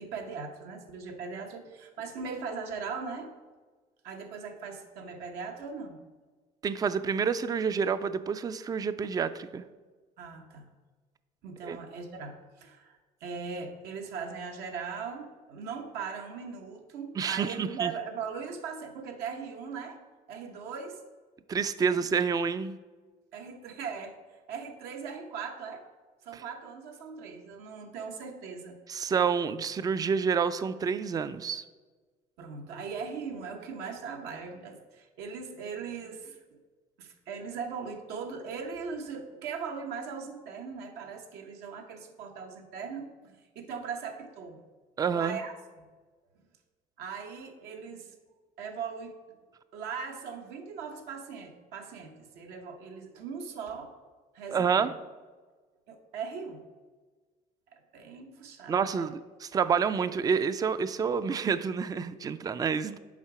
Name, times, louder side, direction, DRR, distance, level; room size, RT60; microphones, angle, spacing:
voice 1, 0.0-3.3 4.0-6.0 10.2-10.7 11.4-20.0 20.3-21.0 23.3-24.2 24.5-25.8 26.2-28.8 32.4-36.6 37.0-44.6 45.1-45.5 47.0-48.1 48.6-49.1 49.7-53.9 54.3-54.9 55.9-56.6 57.7-59.1, right 5 dB, 80° right, 3 dB, 1.0 m, -39 dB
voice 2, 6.6-9.6 11.6-11.8 17.2-17.9 21.5-22.8 26.3-26.4 28.9-31.6 45.0-45.4 54.5-54.9 58.7-63.0, right 6 dB, 25° right, 13 dB, 0.3 m, -28 dB
7.3 x 4.8 x 4.8 m, 1.3 s
cardioid pair, 115°, 17 cm